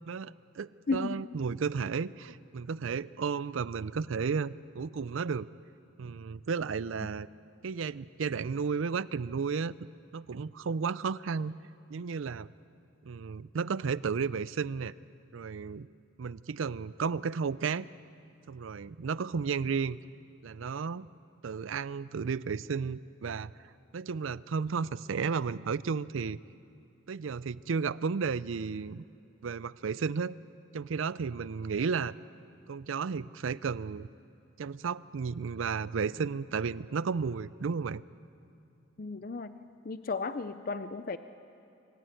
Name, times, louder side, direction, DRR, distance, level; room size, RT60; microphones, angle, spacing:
voice 1, 0.1-5.5 6.0-7.3 7.6-9.7 10.1-11.5 11.9-12.5 13.1-14.9 15.3-15.9 16.2-17.9 18.5-20.0 20.4-21.1 21.4-23.5 23.9-26.4 27.1-29.0 29.4-30.4 30.7-32.1 32.7-34.1 34.6-38.0, right 5 dB, 75° right, 18 dB, 0.5 m, -33 dB
voice 2, 0.9-1.2 39.0-39.5 39.8-41.2, left 4 dB, 45° left, 11 dB, 0.5 m, -34 dB
24.5 x 14.0 x 9.2 m, 2.7 s
head